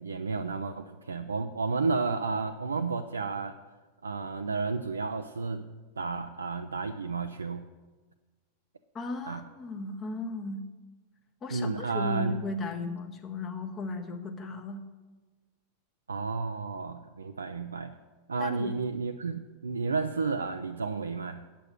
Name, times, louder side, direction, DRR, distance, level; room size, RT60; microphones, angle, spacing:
voice 1, 0.0-3.6 4.0-5.7 6.0-7.7 9.2-9.4 11.5-12.4 16.1-17.9 18.3-21.5, right 4 dB, 75° right, 7 dB, 0.4 m, -32 dB
voice 2, 8.9-10.6 11.4-14.8 18.4-18.8, left 2 dB, 25° left, 4 dB, 1.3 m, -36 dB
8.9 x 6.9 x 8.7 m, 1.3 s
figure-of-eight pair, 90°, 0 cm